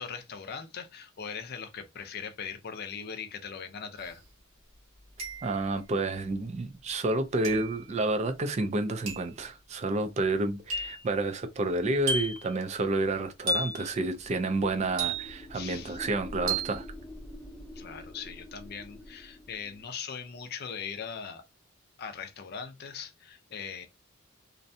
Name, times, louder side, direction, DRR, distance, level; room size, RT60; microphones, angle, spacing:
voice 1, 0.0-4.2 15.5-16.0 17.8-21.4 22.0-23.9, left 6 dB, 50° left, 0.4 m, -40 dB
sound 1, 4.0-4.1 5.2-5.7 7.4-7.8 9.1-9.4 10.7-11.0 12.1-12.5 13.5-13.9 15.0-15.5 16.5-16.8, right 2 dB, 90° right, 1.0 m, -32 dB
voice 2, 5.4-16.9, right 2 dB, 35° right, 0.3 m, -30 dB
sound 2, 14.0-19.9, left 1 dB, 5° left, 0.6 m, -46 dB
2.5 x 2.1 x 2.6 m
head